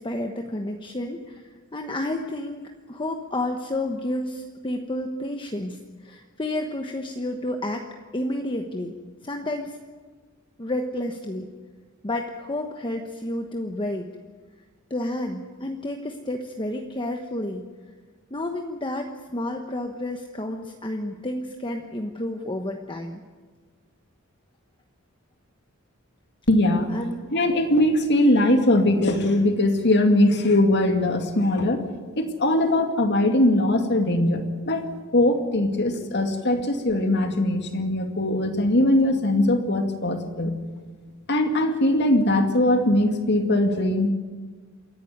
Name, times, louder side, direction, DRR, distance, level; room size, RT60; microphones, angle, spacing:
voice 1, 0.0-7.9 8.1-9.0 9.2-9.8 10.6-11.5 12.0-14.1 14.9-17.7 18.3-23.2 26.9-27.3, left 1 dB, 25° left, 4 dB, 1.1 m, -30 dB
voice 2, 26.5-26.9 27.3-31.8 32.2-34.8 35.1-40.6 41.3-44.1, left 1 dB, 55° left, 5 dB, 2.3 m, -21 dB
27.5 x 11.5 x 9.5 m, 1.4 s
head